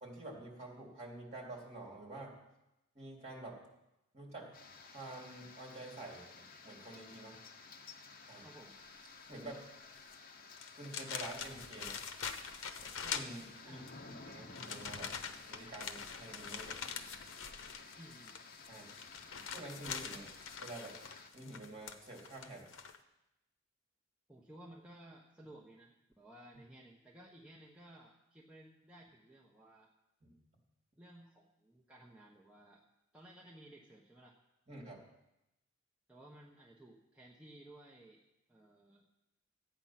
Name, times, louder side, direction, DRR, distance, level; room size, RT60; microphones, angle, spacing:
voice 1, 0.0-2.4 2.9-3.6 4.1-4.5 4.8-7.4 8.3-8.5 9.3-9.6 10.8-12.0 13.0-13.8 14.2-15.2 15.5-16.8 18.7-18.9 19.5-21.0 21.3-22.7 30.2-30.3 34.7-35.0, right 2 dB, 35° right, -1 dB, 3.0 m, -48 dB
sound 1, 4.5-21.3, left 4 dB, 45° left, 1.1 m, -55 dB
voice 2, 8.3-8.8 13.6-14.2 18.0-18.4 24.3-29.9 31.0-32.9 33.1-34.4 36.1-38.2 38.5-39.0, right 1 dB, 5° right, -4 dB, 1.0 m, -57 dB
sound 2, 10.0-10.1 10.5-13.9 14.5-23.0, left 6 dB, 80° left, 0.9 m, -44 dB
13.5 x 8.8 x 5.8 m, 0.92 s
head